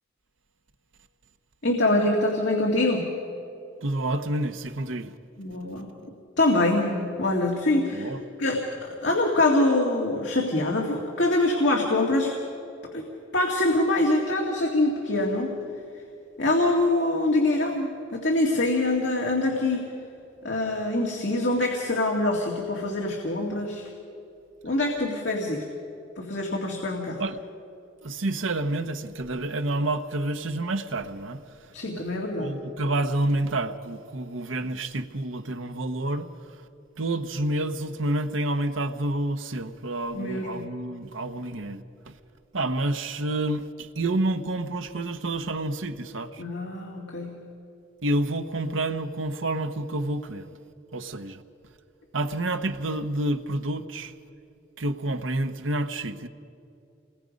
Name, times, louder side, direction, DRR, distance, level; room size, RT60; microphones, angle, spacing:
voice 1, 1.6-3.1 5.4-5.9 6.4-8.1 8.4-12.4 12.9-13.1 13.3-15.6 16.4-19.9 20.4-23.9 24.6-25.7 26.2-27.2 31.7-32.6 40.1-40.8 46.4-47.5, left 2 dB, 65° left, 2.2 m, -24 dB
voice 2, 3.8-5.2 7.9-8.2 27.2-27.4 28.0-36.3 37.0-42.2 42.5-46.4 48.0-50.5 50.9-51.4 52.1-54.1 54.8-56.3, right 2 dB, 80° right, 1.1 m, -29 dB
28.5 x 21.0 x 5.3 m
head